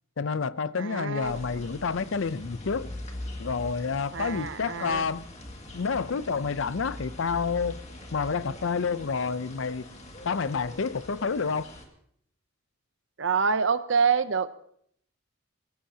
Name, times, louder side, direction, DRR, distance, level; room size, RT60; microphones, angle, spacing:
voice 1, 0.2-2.9 3.4-5.3 5.7-7.8 8.1-9.8 10.2-11.7, left 5 dB, 70° left, 0.6 m, -29 dB
voice 2, 0.8-1.3 4.1-5.0 13.2-14.5, right 5 dB, 65° right, 0.7 m, -26 dB
sound 1, 1.2-11.9, left 1 dB, 35° left, 2.0 m, -42 dB
24.5 x 16.0 x 2.8 m
head